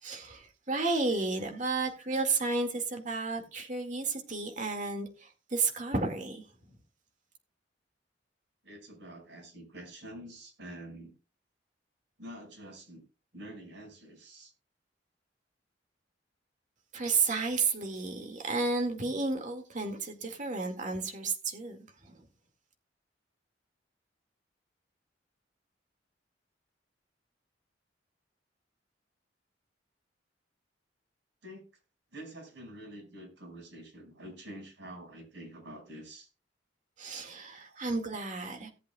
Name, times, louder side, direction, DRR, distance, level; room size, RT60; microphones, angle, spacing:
voice 1, 0.0-6.8 16.9-22.2 37.0-38.7, right 3 dB, 45° right, 2.1 m, -32 dB
voice 2, 8.6-11.1 12.2-13.0 13.3-14.5 31.4-31.6 32.1-36.3 37.6-37.8, right 1 dB, 75° right, 5.7 m, -47 dB
17.5 x 8.3 x 2.3 m
head